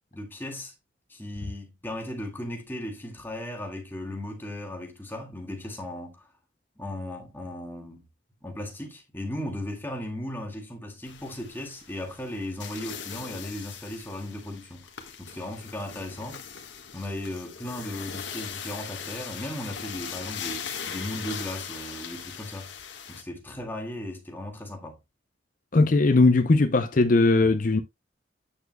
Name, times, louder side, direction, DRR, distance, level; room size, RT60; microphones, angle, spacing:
voice 1, 0.1-0.7 1.1-6.3 6.8-8.0 8.4-14.9 15.2-16.4 16.9-22.8 23.1-25.0, left 1 dB, 10° left, 2.0 m, -36 dB
sound 1, 11.0-23.2, left 7 dB, 85° left, 1.5 m, -40 dB
voice 2, 25.7-27.8, left 3 dB, 45° left, 0.6 m, -19 dB
8.7 x 6.9 x 2.2 m
head